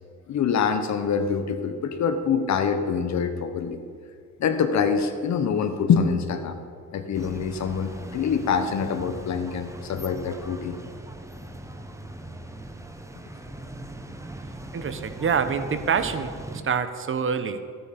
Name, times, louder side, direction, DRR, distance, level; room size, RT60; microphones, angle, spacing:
voice 1, 0.3-3.8 4.4-6.6 6.9-10.8, left 6 dB, 65° left, 9 dB, 1.2 m, -25 dB
sound 1, 7.1-16.6, right 2 dB, 10° right, 1.0 m, -40 dB
voice 2, 14.7-16.3 16.6-17.6, right 6 dB, 45° right, 10 dB, 1.0 m, -26 dB
14.5 x 9.2 x 5.2 m, 2.1 s
cardioid pair, 90°, 30 cm